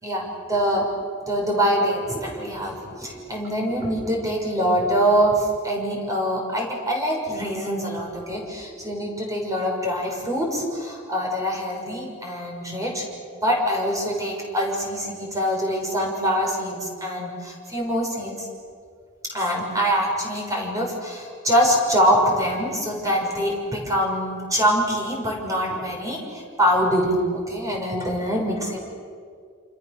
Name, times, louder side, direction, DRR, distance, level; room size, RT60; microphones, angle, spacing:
voice 1, 0.0-0.9 1.3-13.0 13.3-18.5 19.3-28.8, equal, 15° right, -1 dB, 6.2 m, -24 dB
28.0 x 27.5 x 6.9 m, 2.1 s
head